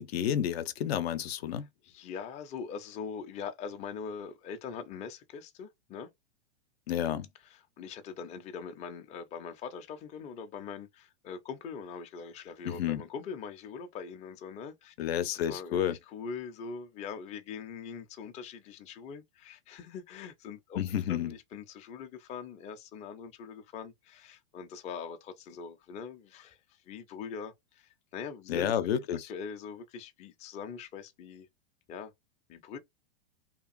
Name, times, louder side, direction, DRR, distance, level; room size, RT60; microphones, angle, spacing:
voice 1, 0.0-1.7 6.9-7.3 12.6-13.0 15.0-16.0 20.8-21.3 28.5-29.3, left 10 dB, 65° left, 0.6 m, -30 dB
voice 2, 1.9-6.1 7.4-14.9 15.5-20.8 21.1-28.9 29.3-31.5 31.9-32.1 32.5-32.8, left 6 dB, 20° left, 0.5 m, -42 dB
2.8 x 2.4 x 2.4 m
hypercardioid pair, 120°, 33 cm